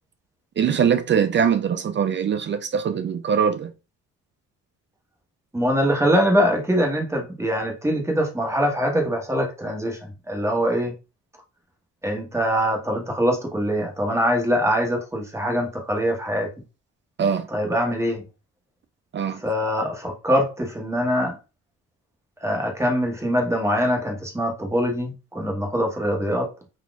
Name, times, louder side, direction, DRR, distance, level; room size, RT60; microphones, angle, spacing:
voice 1, 0.6-3.7 17.2-17.5 19.1-19.4, right 7 dB, 40° right, 0.4 m, -22 dB
voice 2, 5.5-10.9 12.0-16.5 17.5-18.2 19.4-21.4 22.4-26.5, equal, 10° right, 1.2 m, -23 dB
4.0 x 2.8 x 2.4 m
cardioid pair, 110°, 31 cm